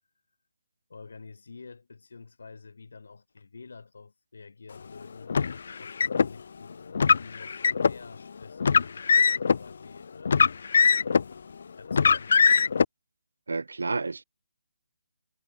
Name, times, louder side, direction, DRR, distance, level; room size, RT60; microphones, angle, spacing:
voice 1, 0.9-5.3 5.8-10.7 11.8-12.7, left 4 dB, 75° left, 7.2 m, -48 dB
Car, 5.3-6.3 6.9-8.0 8.6-9.6 10.2-11.3 11.9-12.8, left 5 dB, 55° left, 0.6 m, -21 dB
voice 2, 13.5-14.2, right 3 dB, 85° right, 1.6 m, -30 dB
hypercardioid pair, 165°, 0 cm